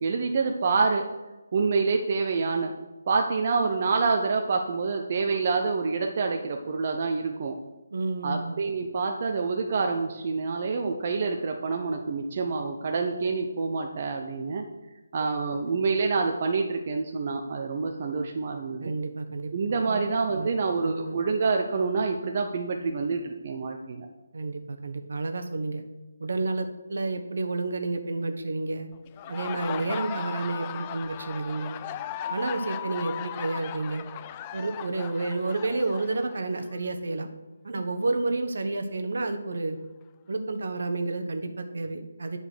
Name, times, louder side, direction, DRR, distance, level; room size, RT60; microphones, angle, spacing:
voice 1, 0.0-1.0 1.5-2.7 3.1-7.5 8.2-14.6 15.1-18.9 19.5-24.1, right 4 dB, 45° right, 3 dB, 0.8 m, -27 dB
voice 2, 7.9-8.6 18.8-19.5 19.8-20.5 20.8-21.2 24.3-25.8 26.2-28.9 29.3-31.8 32.3-34.1 34.5-37.3 37.6-39.8 40.3-42.4, right 3 dB, 65° right, 7 dB, 1.2 m, -30 dB
Laughter, 29.1-36.7, left 11 dB, 25° left, 0.4 m, -37 dB
9.0 x 5.3 x 6.3 m, 1.1 s
figure-of-eight pair, 155°, 0 cm